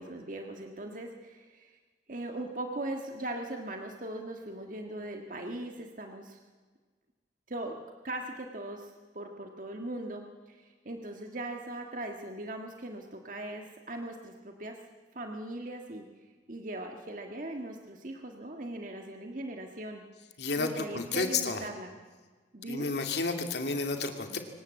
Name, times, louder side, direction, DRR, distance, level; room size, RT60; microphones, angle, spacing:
voice 1, 0.0-1.8 2.1-6.4 7.5-7.8 8.0-14.8 15.1-16.1 16.5-20.0 20.6-21.9 22.5-22.9, right 1 dB, 45° right, 3 dB, 1.7 m, -39 dB
voice 2, 20.4-21.6 22.7-24.4, left 4 dB, 65° left, 5 dB, 2.6 m, -31 dB
24.0 x 19.0 x 8.2 m, 1.4 s
head